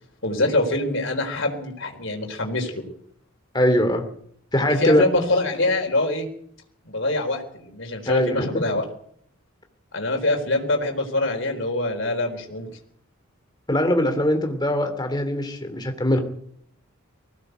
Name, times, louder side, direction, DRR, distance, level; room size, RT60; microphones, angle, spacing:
voice 1, 0.2-2.8 4.8-6.3 6.8-8.8 9.9-12.7, left 2 dB, 55° left, 3 dB, 4.2 m, -24 dB
voice 2, 3.5-4.0 4.5-5.0 8.1-8.6 13.7-16.2, left 1 dB, 20° left, 6 dB, 2.9 m, -21 dB
20.0 x 17.0 x 8.1 m, 0.66 s
head